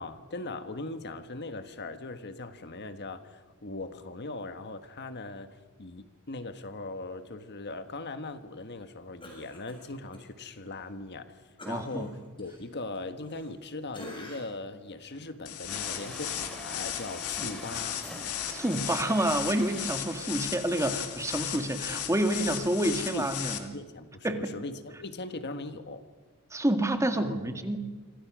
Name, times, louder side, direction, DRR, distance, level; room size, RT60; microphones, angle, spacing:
voice 1, 0.0-11.4 11.7-18.0 22.6-22.7 23.1-26.0 27.1-27.6, left 2 dB, 50° left, 9 dB, 1.4 m, -40 dB
Cough, 9.2-10.2 10.6-10.8 11.6-13.6 13.9-14.6 15.1-15.3, left 1 dB, 25° left, 6.8 m, -47 dB
voice 2, 11.7-12.1 18.5-23.7 24.2-24.5 26.5-27.8, right 1 dB, 15° right, 6 dB, 1.9 m, -28 dB
sound 1, 15.5-23.6, left 10 dB, 80° left, 2.3 m, -36 dB
Truck, 15.7-20.5, equal, 5° left, 4.6 m, -44 dB
27.5 x 25.5 x 6.2 m, 1.3 s
head